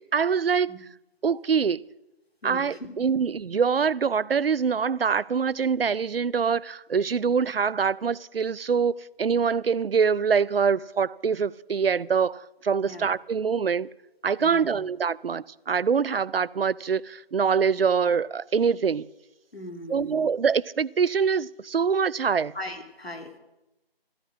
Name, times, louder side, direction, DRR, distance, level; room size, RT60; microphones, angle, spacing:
voice 1, 0.1-0.7 1.2-1.8 2.4-13.9 14.2-19.1 19.9-22.5, right 6 dB, 70° right, 0.5 m, -24 dB
voice 2, 2.4-2.9 12.8-13.1 14.4-14.8 19.5-20.3 22.5-23.4, left 1 dB, 85° left, 3.1 m, -39 dB
14.0 x 14.0 x 6.3 m
figure-of-eight pair, 175°, 30 cm